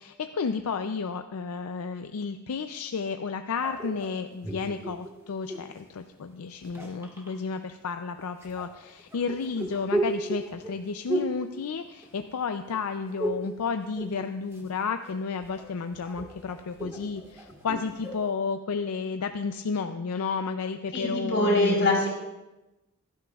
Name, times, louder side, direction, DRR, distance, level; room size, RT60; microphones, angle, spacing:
voice 1, 0.0-22.0, left 5 dB, 85° left, 7 dB, 0.5 m, -32 dB
sound 1, 3.6-5.8 6.5-7.3 8.4-12.4 12.7-13.6 13.8-14.7 15.1-18.3, right 1 dB, 10° right, 1.5 m, -35 dB
voice 2, 20.9-22.1, left 1 dB, 55° left, -2 dB, 4.0 m, -23 dB
15.5 x 12.5 x 2.4 m, 1.0 s
head